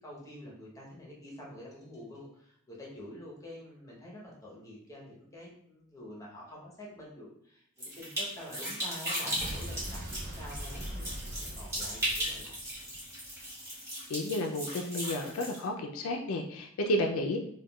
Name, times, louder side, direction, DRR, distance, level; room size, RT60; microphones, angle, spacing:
voice 1, 0.0-12.6 12.9-13.0 17.0-17.1, left 1 dB, 15° left, -4 dB, 0.8 m, -47 dB
sound 1, 7.8-15.6, equal, 15° right, 1.1 m, -37 dB
Explosion, 9.4-13.4, equal, 50° right, 0.5 m, -42 dB
voice 2, 14.1-17.4, left 1 dB, 75° left, 3 dB, 0.4 m, -32 dB
3.5 x 2.2 x 2.2 m, 0.72 s
head